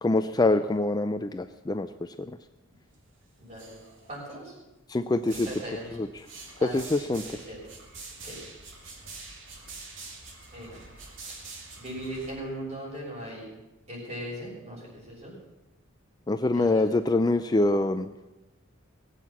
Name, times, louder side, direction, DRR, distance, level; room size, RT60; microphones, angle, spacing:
voice 1, 0.0-2.4 4.9-5.5 6.0-6.1 6.6-7.2 16.3-18.1, left 2 dB, 20° left, 9 dB, 0.4 m, -25 dB
sound 1, 2.7-3.1 3.4-4.4 5.1-12.3, right 3 dB, 65° right, 2.7 m, -45 dB
voice 2, 3.4-3.8 4.1-4.5 5.4-5.9 6.6-6.8 7.2-7.6 8.2-8.4 10.5-10.8 11.8-13.5 13.9-15.3 16.5-16.8, right 1 dB, 35° right, -4 dB, 6.8 m, -39 dB
19.5 x 8.3 x 7.3 m, 1.0 s
head